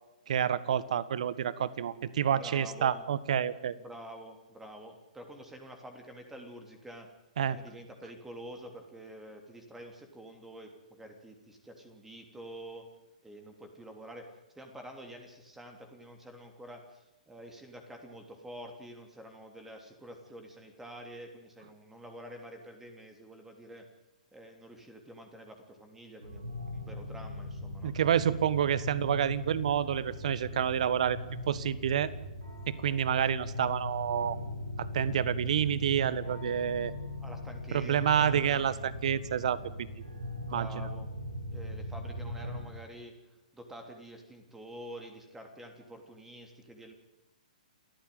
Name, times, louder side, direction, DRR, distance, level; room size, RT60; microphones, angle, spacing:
voice 1, 0.3-3.7 7.4-7.6 27.8-31.2 31.5-32.1 32.7-34.4 34.8-36.9 37.7-40.0 40.5-40.7, right 9 dB, 55° right, 17 dB, 1.5 m, -29 dB
voice 2, 2.3-3.0 3.7-7.1 7.5-12.9 13.2-23.9 24.3-27.9 37.2-38.6 40.4-41.1 41.5-43.1 43.5-46.9, right 1 dB, 5° right, 4 dB, 3.3 m, -48 dB
sound 1, 26.2-42.6, left 1 dB, 85° right, 7.5 m, -40 dB
28.0 x 14.5 x 9.3 m, 0.95 s
figure-of-eight pair, 120°, 4 cm